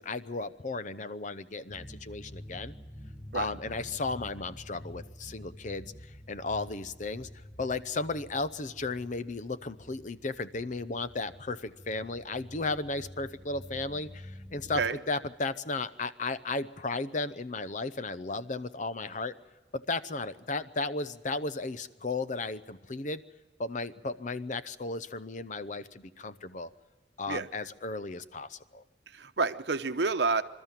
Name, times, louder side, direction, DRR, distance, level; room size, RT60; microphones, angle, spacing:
voice 1, 0.0-2.7 3.3-5.9 6.3-7.3 7.6-14.8 15.1-19.3 19.7-23.2 23.6-26.7 27.2-28.8, left 3 dB, 45° left, 13 dB, 0.7 m, -34 dB
sound 1, 1.7-14.9, equal, 10° left, 1.5 m, -48 dB
voice 2, 29.1-30.4, right 4 dB, 70° right, 10 dB, 0.9 m, -29 dB
26.5 x 13.0 x 9.0 m, 1.3 s
head